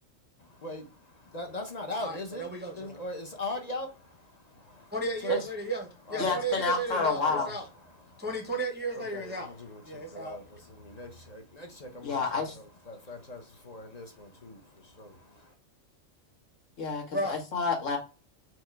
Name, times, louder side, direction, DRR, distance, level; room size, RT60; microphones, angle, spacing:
voice 1, 0.4-5.0 5.2-5.4 6.1-6.4 7.0-7.5 7.8-8.3 9.0-15.5, left 2 dB, 40° left, 0.7 m, -41 dB
voice 2, 2.0-3.0 4.9-7.7 8.2-9.5 9.8-10.4 17.1-17.3, right 2 dB, 10° right, 0.6 m, -34 dB
voice 3, 6.2-7.5 12.0-12.6 16.8-18.0, left 4 dB, 75° left, 1.7 m, -29 dB
4.5 x 2.6 x 4.4 m
omnidirectional pair, 1.3 m